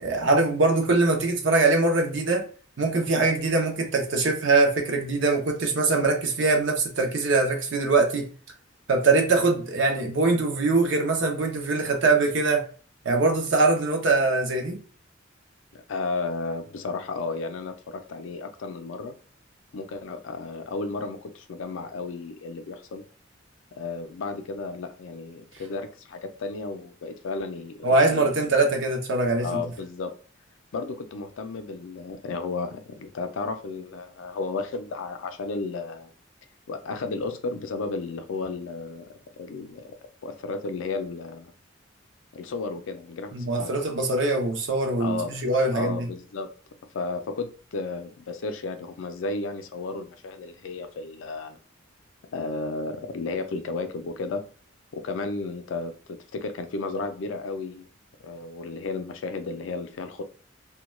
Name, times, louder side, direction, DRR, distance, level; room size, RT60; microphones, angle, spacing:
voice 1, 0.0-2.4 2.8-8.3 8.9-12.7 13.0-14.8 27.8-29.6 43.3-46.1, right 3 dB, 65° right, 0.6 m, -22 dB
voice 2, 15.7-19.1 19.7-23.0 23.7-28.3 29.4-30.1 30.7-36.1 36.7-40.0 40.2-41.5 42.3-43.7 45.0-45.4 45.7-46.5 46.9-51.6 52.3-54.4 54.9-57.9 58.2-60.2, left 3 dB, 80° left, 0.4 m, -33 dB
2.2 x 2.2 x 3.0 m
head